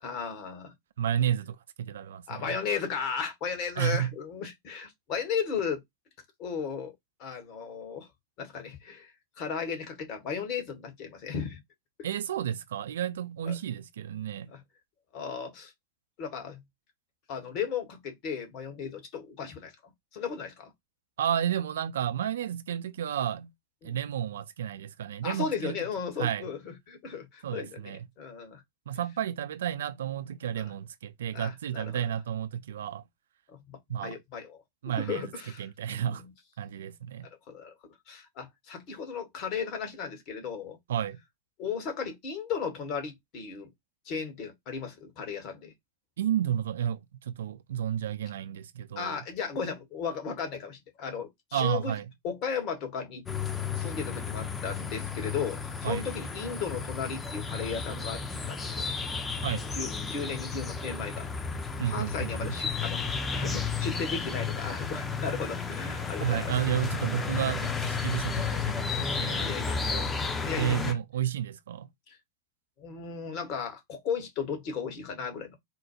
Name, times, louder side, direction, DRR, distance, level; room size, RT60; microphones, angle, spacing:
voice 1, 0.0-0.7 2.3-5.8 6.4-6.9 7.2-8.1 8.4-9.1 9.4-11.6 13.5-13.6 14.5-14.6 15.1-15.7 16.2-16.6 17.3-19.7 20.1-20.7 23.8-24.0 25.2-28.6 30.6-30.7 31.3-32.0 33.5-35.7 35.9-36.2 37.5-37.7 38.1-40.8 41.6-43.7 44.0-45.7 48.9-51.9 52.2-53.2 53.7-58.9 59.7-61.3 61.8-63.0 63.3-66.6 69.4-69.8 70.4-71.0 72.1-72.2 72.8-75.6, left 6 dB, 40° left, 1.3 m, -35 dB
voice 2, 1.0-2.6 3.8-4.1 12.0-14.5 21.2-23.5 23.8-25.8 26.2-26.5 27.4-28.1 28.9-33.0 33.9-34.2 34.8-35.3 35.6-36.2 36.6-37.3 40.9-41.2 46.2-49.2 51.5-52.1 55.8-56.1 59.4-59.7 61.8-62.6 66.2-70.1 70.5-71.9, right 10 dB, 60° right, 0.4 m, -31 dB
sound 1, 53.3-70.9, left 5 dB, 15° left, 0.7 m, -33 dB
4.3 x 2.2 x 2.9 m
figure-of-eight pair, 90°, 0 cm